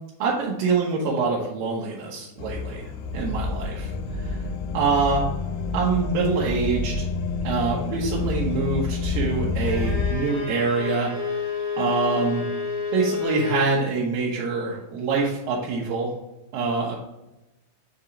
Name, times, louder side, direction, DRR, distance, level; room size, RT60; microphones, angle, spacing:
voice 1, 0.2-2.9 3.1-4.4 4.7-5.2 5.7-7.1 7.4-11.5 11.8-12.4 12.9-16.1 16.5-17.0, right 4 dB, 80° right, -4 dB, 2.6 m, -25 dB
sound 1, 2.4-10.1, left 4 dB, 85° left, 2.3 m, -28 dB
Bowed string instrument, 9.6-13.7, left 5 dB, 45° left, 0.9 m, -29 dB
6.9 x 2.9 x 4.9 m, 0.97 s
omnidirectional pair, 4.0 m